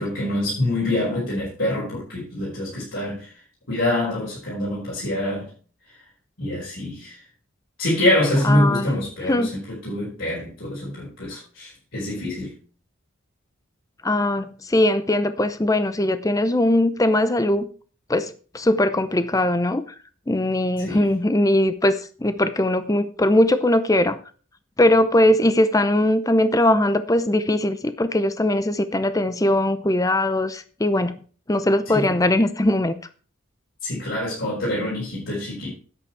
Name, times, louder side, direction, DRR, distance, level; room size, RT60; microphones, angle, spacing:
voice 1, 0.0-3.3 3.7-5.5 6.4-7.2 7.8-12.5 20.8-21.0 31.9-32.1 33.8-35.7, left 1 dB, 70° left, -7 dB, 5.0 m, -25 dB
voice 2, 8.4-8.9 9.3-9.5 14.0-17.7 18.1-19.8 20.3-24.2 24.8-31.2 31.5-32.9 34.8-34.9, left 1 dB, 15° left, 13 dB, 0.6 m, -20 dB
9.9 x 8.2 x 4.7 m, 0.41 s
head